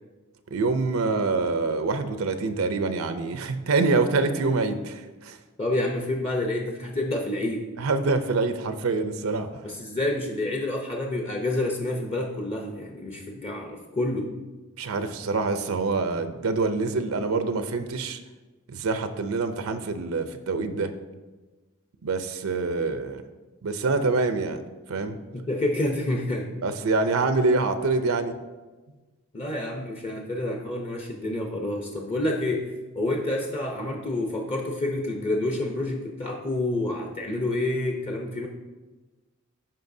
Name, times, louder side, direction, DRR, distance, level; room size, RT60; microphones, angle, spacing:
voice 1, 0.5-5.4 7.8-9.7 14.8-18.2 18.7-20.9 22.0-23.2 23.6-24.6 24.9-25.2 26.6-28.4, right 3 dB, 85° right, 9 dB, 0.6 m, -25 dB
voice 2, 5.6-7.7 9.6-14.3 25.3-26.5 29.3-38.5, left 1 dB, 30° left, 1 dB, 0.6 m, -28 dB
13.0 x 5.4 x 2.7 m, 1.2 s
head